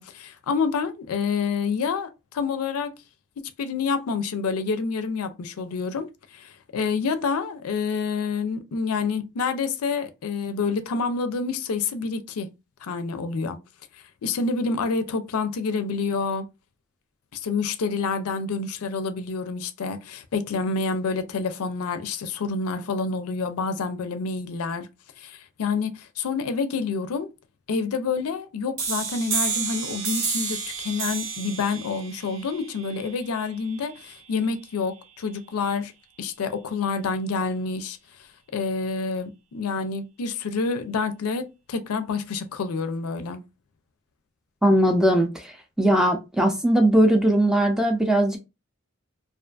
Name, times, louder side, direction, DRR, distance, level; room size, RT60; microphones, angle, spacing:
voice 1, 0.0-2.9 3.6-6.1 6.3-12.5 12.8-13.6 14.2-16.4 17.3-24.9 25.2-27.3 27.7-35.9 36.2-38.0 38.5-43.4, left 4 dB, 85° left, 0.4 m, -28 dB
sound 1, 28.8-34.2, right 5 dB, 60° right, 0.7 m, -31 dB
voice 2, 44.6-48.4, right 1 dB, ahead, 0.3 m, -20 dB
2.5 x 2.4 x 2.2 m
head